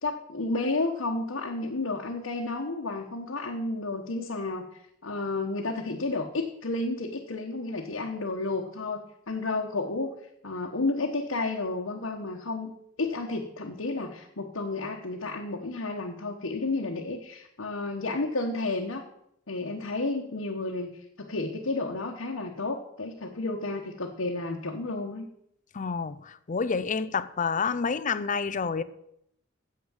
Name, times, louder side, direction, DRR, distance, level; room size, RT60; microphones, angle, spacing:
voice 1, 0.0-4.7 5.0-10.1 10.4-12.7 13.0-19.0 19.5-25.3, left 2 dB, 85° left, 1.2 m, -31 dB
voice 2, 25.7-28.8, left 5 dB, 40° left, 0.5 m, -29 dB
9.6 x 7.8 x 7.2 m
head